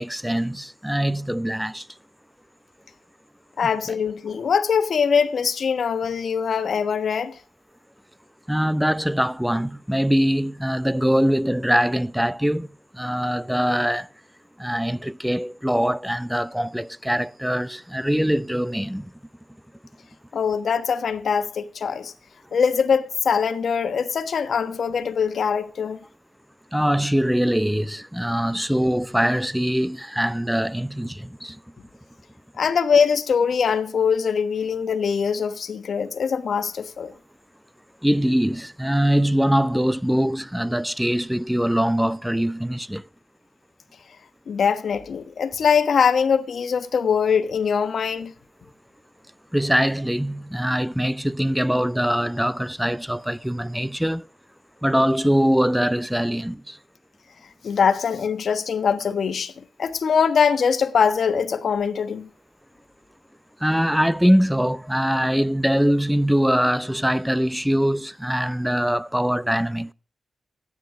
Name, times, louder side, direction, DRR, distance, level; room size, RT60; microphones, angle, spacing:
voice 1, 0.0-1.9 8.5-12.7 12.9-14.1 14.6-19.1 26.7-31.6 38.0-43.0 49.5-54.3 54.8-56.8 63.6-69.9, equal, 5° right, 0.6 m, -22 dB
voice 2, 3.6-7.4 20.3-22.1 22.5-26.0 32.6-37.1 44.5-48.3 57.6-62.3, left 6 dB, 75° left, 1.3 m, -22 dB
15.0 x 9.8 x 5.0 m
cardioid pair, 70°, 0 cm